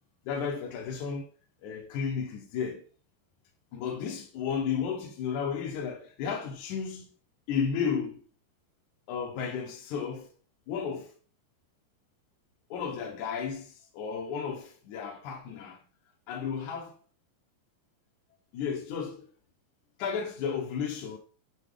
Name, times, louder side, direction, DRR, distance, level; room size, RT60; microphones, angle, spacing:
voice 1, 0.3-1.3 1.6-2.9 3.7-7.1 7.5-8.2 9.1-10.3 10.7-11.1 12.7-15.8 16.3-17.0 18.5-19.3 20.0-21.2, left 6 dB, 75° left, 2.3 m, -33 dB
8.2 x 4.5 x 3.4 m
omnidirectional pair, 3.6 m